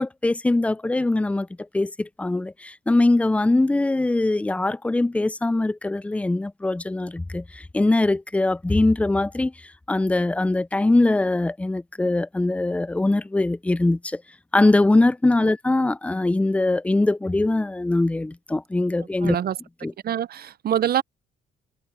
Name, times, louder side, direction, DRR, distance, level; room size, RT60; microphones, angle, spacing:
voice 1, 0.0-1.5 1.7-9.5 9.9-14.2 14.5-19.4 19.8-19.9, left 2 dB, 5° left, 0.3 m, -22 dB
voice 2, 19.2-19.6 20.0-21.0, right 10 dB, 50° right, 0.6 m, -24 dB
cardioid pair, 90°, 20 cm